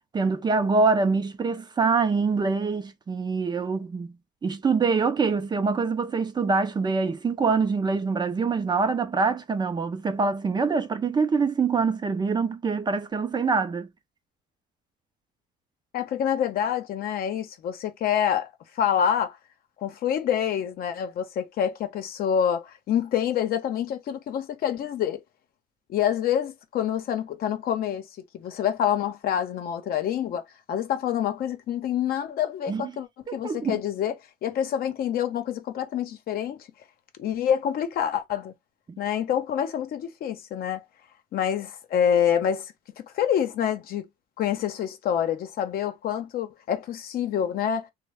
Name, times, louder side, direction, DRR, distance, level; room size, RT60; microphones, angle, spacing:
voice 1, 0.1-4.1 4.4-13.9 32.7-32.9 33.3-33.8 38.9-39.0, right 4 dB, 25° right, 0.5 m, -25 dB
voice 2, 15.9-18.5 18.8-19.4 19.8-25.2 25.9-28.1 28.3-30.4 30.7-34.1 34.4-36.6 37.2-38.5 39.0-40.8 41.3-42.7 43.1-44.1 44.4-47.9, left 9 dB, 60° left, 0.7 m, -27 dB
3.1 x 2.1 x 3.4 m
cardioid pair, 110°, 17 cm